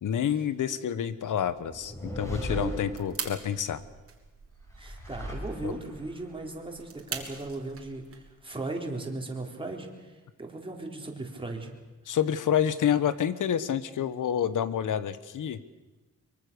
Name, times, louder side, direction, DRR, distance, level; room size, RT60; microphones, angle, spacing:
voice 1, 0.0-3.8 5.6-5.7 12.1-15.6, left 9 dB, 85° left, 14 dB, 1.3 m, -28 dB
sound 1, 1.6-3.6 4.6-6.1, equal, 10° left, 5.3 m, -37 dB
sound 2, 2.6-8.4, right 5 dB, 45° right, 3.4 m, -43 dB
voice 2, 4.8-11.7, right 2 dB, 15° right, 1 dB, 3.8 m, -37 dB
24.0 x 23.5 x 6.9 m, 1.2 s
wide cardioid pair, 130°, 30 cm